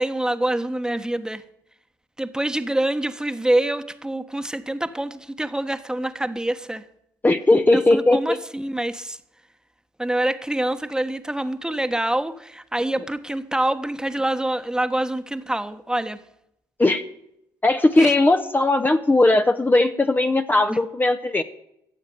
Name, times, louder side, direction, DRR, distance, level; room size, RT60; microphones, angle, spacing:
voice 1, 0.0-1.4 2.2-6.8 7.7-9.2 10.0-16.2 18.0-18.1 20.7-20.8, right 1 dB, 10° right, 9 dB, 1.3 m, -26 dB
voice 2, 7.2-8.4 16.8-17.0 17.6-21.4, left 2 dB, 20° left, 6 dB, 1.0 m, -18 dB
15.5 x 7.3 x 9.4 m, 0.80 s
hypercardioid pair, 50°, 9 cm